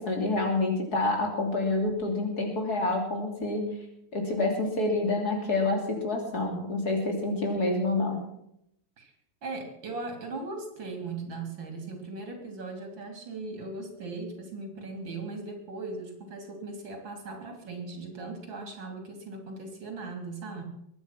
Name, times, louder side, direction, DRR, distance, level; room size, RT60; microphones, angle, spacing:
voice 1, 0.0-3.7 4.1-8.2, left 2 dB, 50° left, 2 dB, 3.6 m, -28 dB
voice 2, 7.6-8.0 9.0-9.1 9.4-20.6, right 3 dB, 75° right, 4 dB, 3.9 m, -38 dB
22.5 x 9.5 x 5.9 m, 0.76 s
omnidirectional pair, 2.1 m